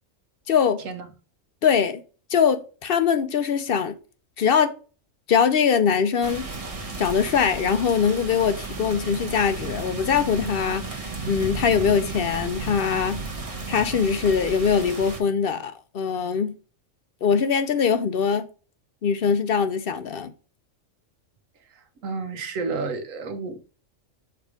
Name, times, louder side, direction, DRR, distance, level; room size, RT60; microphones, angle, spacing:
voice 1, 0.5-0.8 1.6-2.0 2.3-3.9 4.4-4.7 5.3-6.5 7.0-13.2 13.7-16.5 17.2-18.5 19.0-20.3, left 6 dB, 55° left, 0.7 m, -22 dB
sound 1, 6.2-15.2, right 3 dB, 30° right, 1.1 m, -34 dB
voice 2, 22.0-23.6, right 4 dB, 75° right, 1.3 m, -30 dB
6.8 x 3.3 x 5.0 m
omnidirectional pair, 1.4 m